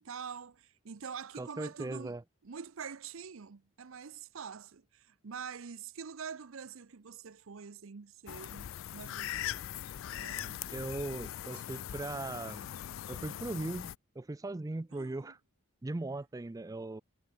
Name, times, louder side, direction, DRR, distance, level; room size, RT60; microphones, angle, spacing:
voice 1, 0.0-2.2 2.4-9.6 10.0-10.6 11.5-11.6 14.9-15.3, right 6 dB, 80° right, 0.7 m, -46 dB
voice 2, 1.3-2.2 10.7-12.7 13.1-13.9 14.2-15.4 15.8-17.0, right 2 dB, 15° right, 0.4 m, -38 dB
sound 1, 8.3-13.9, left 11 dB, 70° left, 0.3 m, -41 dB
head